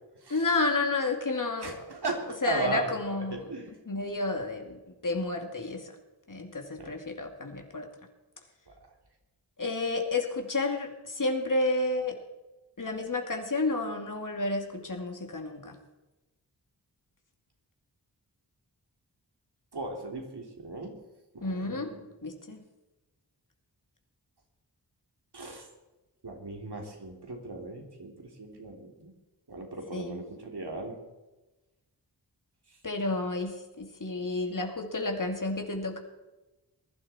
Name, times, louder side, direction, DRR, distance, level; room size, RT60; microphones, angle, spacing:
voice 1, 0.3-1.8 2.4-3.4 3.9-5.9 6.3-7.9 9.6-12.2 12.8-15.8 21.4-21.9 22.2-22.6 29.9-30.2 32.8-36.0, left 2 dB, 50° left, 3 dB, 2.7 m, -31 dB
voice 2, 1.6-3.7 6.8-6.9 19.7-21.0 21.3-22.0 25.3-25.7 26.2-29.1 29.5-31.0, right 2 dB, 65° right, 1 dB, 3.4 m, -37 dB
20.5 x 11.5 x 4.4 m, 1.1 s
wide cardioid pair, 55°, 42 cm